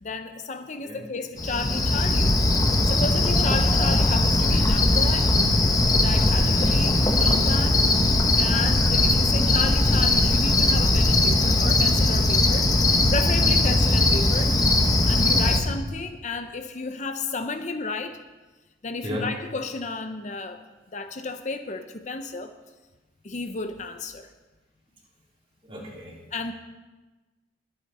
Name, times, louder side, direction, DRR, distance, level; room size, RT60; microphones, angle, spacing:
voice 1, 0.0-5.3 5.9-7.8 8.4-14.8 15.1-18.2 18.8-20.6 20.9-22.5 23.2-24.3 26.3-26.5, left 3 dB, 40° left, 8 dB, 0.7 m, -33 dB
Cricket, 1.4-15.6, left 2 dB, 20° left, 1.0 m, -20 dB
voice 2, 6.3-6.9 8.7-8.9 13.4-13.7 19.0-19.3 25.6-26.2, equal, 30° right, -4 dB, 3.6 m, -36 dB
22.0 x 8.7 x 4.3 m, 1.2 s
head